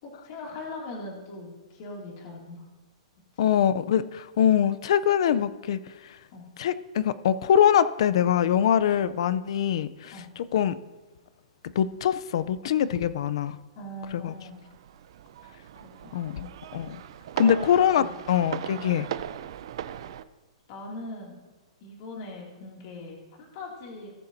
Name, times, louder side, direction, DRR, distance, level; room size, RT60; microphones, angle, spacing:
voice 1, 0.0-2.6 6.3-6.5 10.1-10.3 13.8-14.6 15.8-16.2 17.4-17.7 18.0-18.1 20.7-21.4 21.8-24.1, left 2 dB, 35° left, -2 dB, 2.4 m, -40 dB
voice 2, 3.4-6.2 6.6-10.8 11.8-13.6 14.1-14.3 16.1-17.0 17.4-19.1, left 9 dB, 55° left, 14 dB, 0.5 m, -24 dB
sound 1, 14.0-20.2, right 10 dB, 50° right, 0.5 m, -38 dB
19.0 x 6.8 x 2.7 m, 1.2 s
hypercardioid pair, 170°, 3 cm